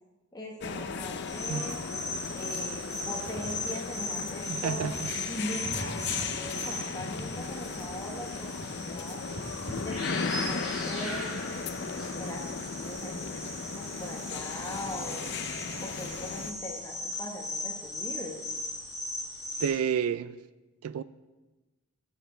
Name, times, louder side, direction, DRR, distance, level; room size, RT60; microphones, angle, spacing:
voice 1, 0.3-1.8 2.3-4.9 5.3-9.2 9.8-11.3 11.8-15.4 15.8-18.6, left 1 dB, 15° left, 0 dB, 1.0 m, -41 dB
sound 1, 0.6-16.5, left 5 dB, 50° left, 0.5 m, -36 dB
sound 2, 1.3-19.7, left 1 dB, ahead, 4.2 m, -38 dB
sound 3, 3.3-3.8 4.8-5.1 5.6-6.6 7.2-7.7 8.6-8.9 9.3-10.0, equal, 50° right, 1.8 m, -42 dB
voice 2, 4.5-5.1 19.6-20.4 20.8-21.0, right 7 dB, 85° right, 15 dB, 0.3 m, -30 dB
11.5 x 6.9 x 5.0 m, 1.1 s
head